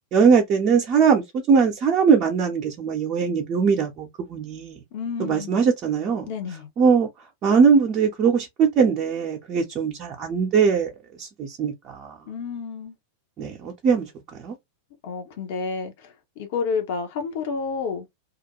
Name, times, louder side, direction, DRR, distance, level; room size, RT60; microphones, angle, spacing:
voice 1, 0.1-4.8 5.2-6.3 6.8-7.1 7.4-10.9 11.2-12.1 13.4-14.1 14.4-14.6, right 6 dB, 35° right, 0.6 m, -21 dB
voice 2, 4.9-5.5 6.2-6.7 12.3-13.0 15.0-18.1, left 5 dB, 50° left, 0.8 m, -30 dB
2.4 x 2.2 x 2.8 m
figure-of-eight pair, 90°, 0 cm